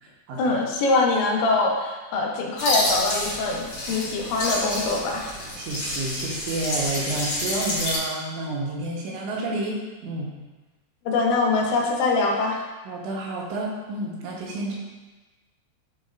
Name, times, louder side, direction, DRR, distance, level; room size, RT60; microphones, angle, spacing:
voice 1, 0.4-5.3 11.1-12.6, left 3 dB, 80° left, -1 dB, 3.1 m, -23 dB
sound 1, 2.6-8.0, left 1 dB, 40° left, 2.2 m, -29 dB
voice 2, 5.6-10.3 12.8-14.7, right 2 dB, 85° right, -3 dB, 3.2 m, -30 dB
10.5 x 4.2 x 2.5 m, 1.2 s
omnidirectional pair, 5.2 m